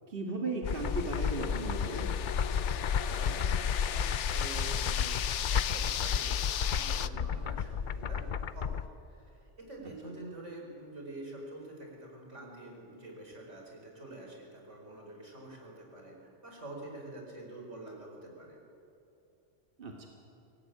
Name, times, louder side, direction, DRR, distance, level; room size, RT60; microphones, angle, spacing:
voice 1, 0.1-2.1 10.0-10.1 19.8-20.1, right 2 dB, 50° right, 1 dB, 2.3 m, -36 dB
sound 1, 0.6-7.1, left 10 dB, 75° left, 1.0 m, -36 dB
sound 2, 0.6-8.9, left 7 dB, 50° left, 0.7 m, -32 dB
voice 2, 2.9-5.2 5.5-18.6, right 2 dB, 85° right, 0 dB, 5.2 m, -47 dB
24.5 x 18.0 x 9.5 m, 2.8 s
omnidirectional pair, 1.2 m